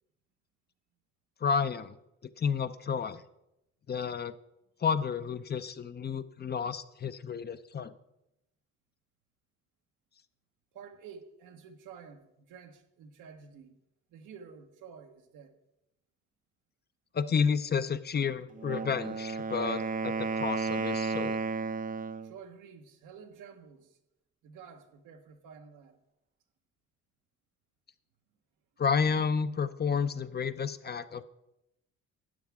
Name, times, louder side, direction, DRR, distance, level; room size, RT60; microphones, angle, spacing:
voice 1, 1.4-2.0 2.4-3.2 3.9-4.3 4.8-7.9 17.1-21.4 28.8-31.2, left 6 dB, 35° left, 0.6 m, -31 dB
voice 2, 10.7-13.7 14.1-15.6 22.2-24.0 24.4-26.0, right 6 dB, 90° right, 1.2 m, -50 dB
Wind instrument woodwind instrument, 18.5-22.3, right 4 dB, 30° right, 0.5 m, -33 dB
12.5 x 9.4 x 3.5 m
cardioid pair, 90°, 30 cm